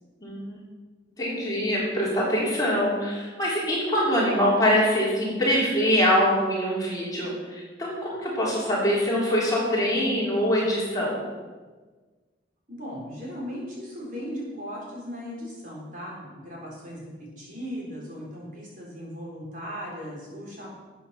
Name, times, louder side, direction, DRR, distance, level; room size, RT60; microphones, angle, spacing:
voice 1, 0.2-0.6 1.2-11.2, equal, 20° left, -6 dB, 3.5 m, -24 dB
voice 2, 12.7-20.7, equal, 45° right, -3 dB, 4.1 m, -37 dB
12.5 x 8.4 x 5.9 m, 1.3 s
head